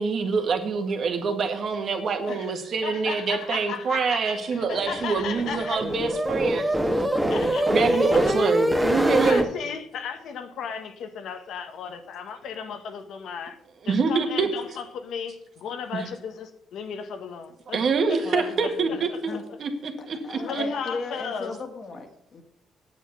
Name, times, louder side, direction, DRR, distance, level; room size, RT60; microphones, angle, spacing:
voice 1, 0.0-6.7 7.7-9.5 13.8-14.5 15.9-16.1 17.7-19.3 19.6-19.7 20.1-20.6, right 5 dB, 55° right, 1.9 m, -25 dB
voice 2, 2.3-5.8 7.3-7.8 8.1-8.2 9.2-13.6 13.9-17.8 18.1-19.4 20.3-21.6, left 6 dB, 75° left, 1.4 m, -35 dB
sound 1, 4.8-9.5, equal, 5° right, 1.6 m, -24 dB
voice 3, 18.2-19.4 20.0-22.4, left 3 dB, 45° left, 2.0 m, -37 dB
8.9 x 8.3 x 6.6 m
cardioid pair, 90°, 0 cm